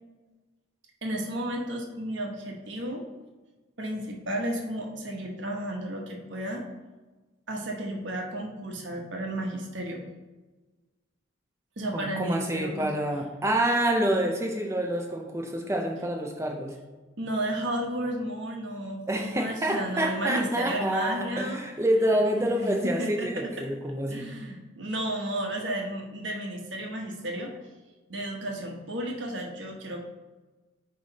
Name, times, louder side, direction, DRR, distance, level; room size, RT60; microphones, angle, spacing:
voice 1, 1.0-3.0 3.8-6.6 7.5-10.0 11.8-12.9 17.2-21.6 22.3-27.5 28.1-30.0, right 1 dB, 65° right, 0 dB, 1.2 m, -33 dB
voice 2, 11.9-16.7 19.1-24.3, right 1 dB, 15° right, 2 dB, 0.5 m, -27 dB
9.5 x 3.2 x 4.0 m, 1.3 s
head